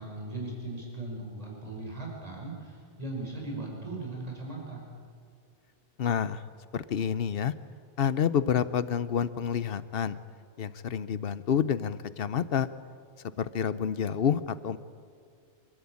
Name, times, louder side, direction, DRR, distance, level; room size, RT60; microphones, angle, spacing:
voice 1, 0.0-4.9, right 2 dB, 40° right, -2 dB, 5.2 m, -38 dB
voice 2, 6.0-6.4 6.7-7.5 8.0-10.2 10.6-12.7 13.4-14.8, left 8 dB, 70° left, 15 dB, 1.0 m, -28 dB
26.5 x 13.5 x 8.6 m, 2.2 s
omnidirectional pair, 1.0 m